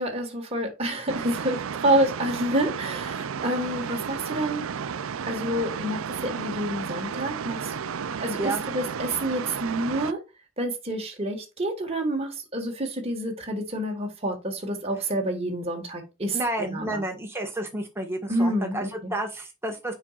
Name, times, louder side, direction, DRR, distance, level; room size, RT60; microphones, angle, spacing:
voice 1, 0.0-4.6 5.3-7.7 8.2-10.2 10.6-16.4 16.7-17.0 18.3-19.1, right 1 dB, 30° right, 1.7 m, -28 dB
sound 1, 1.1-10.1, right 7 dB, 70° right, 0.4 m, -33 dB
voice 2, 16.3-19.9, right 1 dB, 10° right, 1.6 m, -31 dB
7.3 x 5.4 x 2.4 m
head